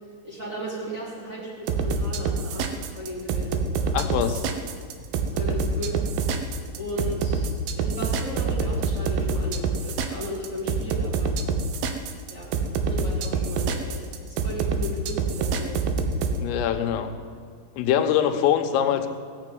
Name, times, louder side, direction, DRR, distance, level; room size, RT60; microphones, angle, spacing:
voice 1, 0.2-2.7 2.9-3.9 4.2-4.3 5.3-6.0 6.8-7.5 7.7-11.4 12.3-12.5 12.8-15.8 16.3-16.6, equal, 15° right, -7 dB, 3.7 m, -35 dB
sound 1, 1.7-16.4, right 5 dB, 75° right, 2.3 m, -26 dB
voice 2, 3.9-4.4 16.4-17.1 17.8-19.1, left 9 dB, 90° left, 6 dB, 3.6 m, -23 dB
17.5 x 7.6 x 9.3 m, 2.1 s
omnidirectional pair, 5.7 m